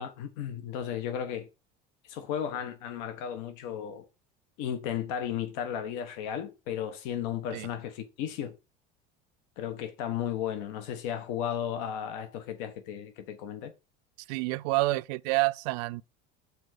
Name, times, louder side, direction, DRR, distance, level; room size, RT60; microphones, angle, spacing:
voice 1, 0.0-1.5 2.0-4.1 4.6-8.5 9.6-13.7, left 9 dB, 80° left, 1.1 m, -34 dB
voice 2, 14.3-16.0, right 21 dB, 85° right, 0.5 m, -28 dB
7.1 x 4.0 x 6.2 m
cardioid pair, 150°, 20 cm